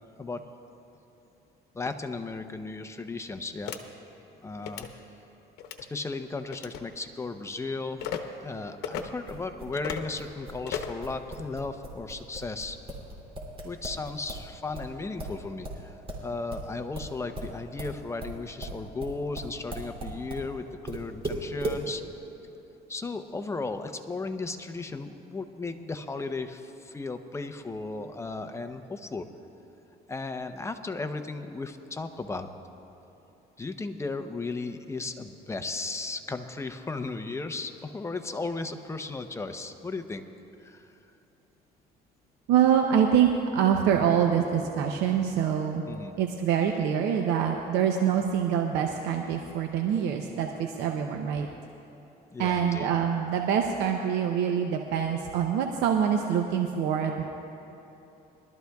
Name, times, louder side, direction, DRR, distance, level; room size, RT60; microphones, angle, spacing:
voice 1, 1.7-3.7 4.4-4.9 5.9-8.1 8.4-12.8 13.6-22.0 22.9-29.3 30.1-32.5 33.6-40.3 40.6-40.9 45.9-46.1 52.3-52.9, left 3 dB, 15° left, 8 dB, 0.7 m, -35 dB
sound 1, 3.7-3.8 4.6-4.9 5.6-5.8 6.5-6.8 8.0-8.2 8.8-9.0 9.7-10.1 10.7-11.0, left 9 dB, 85° left, 0.9 m, -34 dB
sound 2, 8.9-14.5 14.7-20.5 20.9-21.8, right 2 dB, 35° right, 2.8 m, -37 dB
voice 2, 42.5-45.8 46.2-51.5 52.4-57.2, right 8 dB, 90° right, 3 dB, 0.7 m, -25 dB
22.5 x 12.5 x 2.3 m, 3.0 s
cardioid pair, 110°, 17 cm